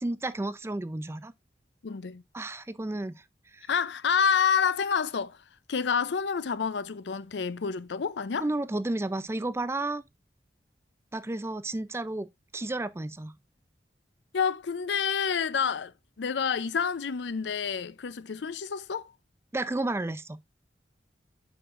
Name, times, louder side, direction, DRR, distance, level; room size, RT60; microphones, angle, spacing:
voice 1, 0.0-1.3 2.3-3.1 3.5-3.7 8.4-10.0 11.1-12.3 12.5-13.3 19.5-20.4, right 2 dB, 15° right, 0.4 m, -32 dB
voice 2, 1.8-2.2 3.7-5.4 5.7-8.5 14.3-15.9 16.2-19.1, left 6 dB, 80° left, 0.5 m, -28 dB
7.8 x 6.3 x 2.4 m
head